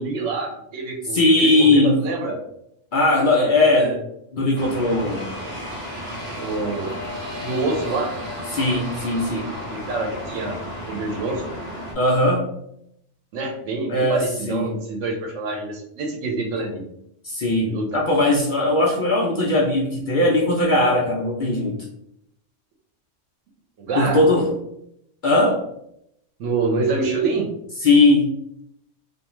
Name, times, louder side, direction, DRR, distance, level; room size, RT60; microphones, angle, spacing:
voice 1, 0.0-2.4 3.6-4.0 6.3-7.0 7.4-8.2 9.2-10.6 10.9-11.4 13.3-16.8 17.6-18.0 23.8-24.2 26.4-27.5, right 3 dB, 85° right, 1 dB, 1.0 m, -26 dB
voice 2, 1.1-1.9 2.9-3.9 4.3-5.3 8.5-9.5 12.0-12.5 13.9-14.7 17.2-21.8 24.0-24.5 25.2-25.6 27.8-28.3, left 2 dB, 60° left, -3 dB, 0.5 m, -19 dB
sound 1, 4.6-11.9, equal, 30° right, 0.7 m, -33 dB
2.5 x 2.3 x 3.0 m, 0.76 s
omnidirectional pair, 1.3 m